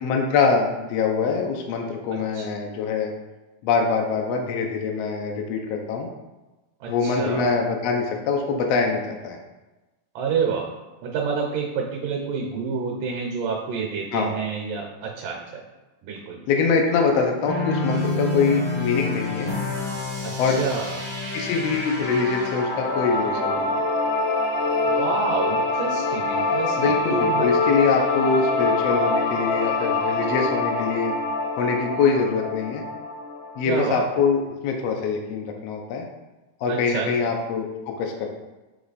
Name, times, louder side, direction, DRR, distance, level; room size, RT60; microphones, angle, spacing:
voice 1, 0.0-3.1 3.6-6.1 6.9-9.4 14.1-14.3 16.5-19.5 20.4-20.6 21.3-23.7 26.8-31.2 31.6-32.8 33.6-36.0 36.6-38.3, left 5 dB, 90° left, 2 dB, 1.4 m, -24 dB
voice 2, 2.1-2.5 6.8-7.5 10.2-10.8 11.0-15.6 16.0-16.5 20.2-21.0 24.9-27.5 33.7-34.0 36.7-37.3, right 5 dB, 75° right, 0 dB, 2.4 m, -28 dB
sound 1, 17.5-23.7, left 2 dB, 25° left, 0.6 m, -28 dB
sound 2, 22.6-33.6, left 3 dB, 70° left, 2.0 m, -24 dB
7.5 x 3.2 x 4.0 m, 1.1 s
omnidirectional pair, 3.9 m